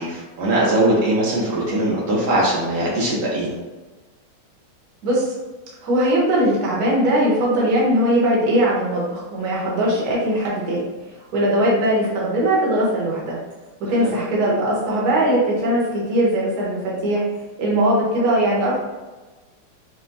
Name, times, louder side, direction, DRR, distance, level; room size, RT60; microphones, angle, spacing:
voice 1, 0.0-3.5 14.0-14.1, right 1 dB, 75° right, -5 dB, 1.6 m, -21 dB
voice 2, 5.8-10.8 11.3-13.4 13.9-17.2 17.6-18.8, right 1 dB, 55° right, -5 dB, 1.4 m, -20 dB
5.6 x 2.1 x 2.6 m, 1.2 s
omnidirectional pair, 2.3 m